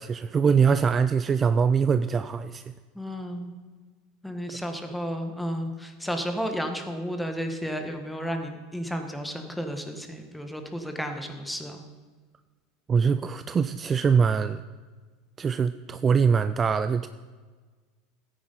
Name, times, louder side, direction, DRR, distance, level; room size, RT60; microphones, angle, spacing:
voice 1, 0.0-2.6 12.9-14.6 15.4-17.1, right 6 dB, 30° right, 11 dB, 0.3 m, -23 dB
voice 2, 2.9-3.5 4.2-11.8, equal, 5° left, 5 dB, 1.5 m, -32 dB
13.5 x 9.5 x 4.2 m, 1.4 s
hypercardioid pair, 95°, 0 cm